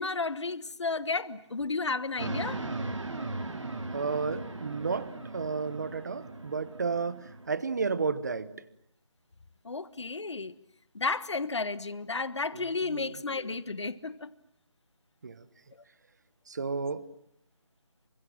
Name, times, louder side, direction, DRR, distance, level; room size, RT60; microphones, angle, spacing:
voice 1, 0.0-2.6 9.6-10.5 10.9-14.3, left 3 dB, 70° left, 1.4 m, -32 dB
sound 1, 2.2-7.6, right 2 dB, 85° right, 3.0 m, -38 dB
voice 2, 3.9-8.5 12.5-13.1 15.2-15.4 16.5-17.0, right 5 dB, 35° right, 1.2 m, -32 dB
28.0 x 25.5 x 7.4 m
figure-of-eight pair, 170°, 15 cm